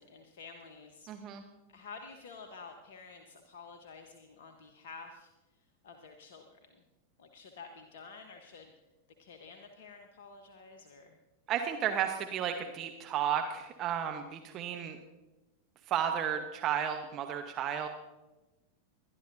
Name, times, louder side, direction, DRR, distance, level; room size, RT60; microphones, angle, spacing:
voice 1, 0.0-1.1 1.7-5.3 5.8-6.8 7.2-8.7 9.2-11.2, left 4 dB, 55° left, 5 dB, 1.0 m, -50 dB
voice 2, 1.1-1.4 11.5-15.0 15.9-17.9, right 9 dB, 35° right, 5 dB, 0.9 m, -33 dB
21.5 x 11.5 x 2.7 m, 1.1 s
figure-of-eight pair, 90°, 0 cm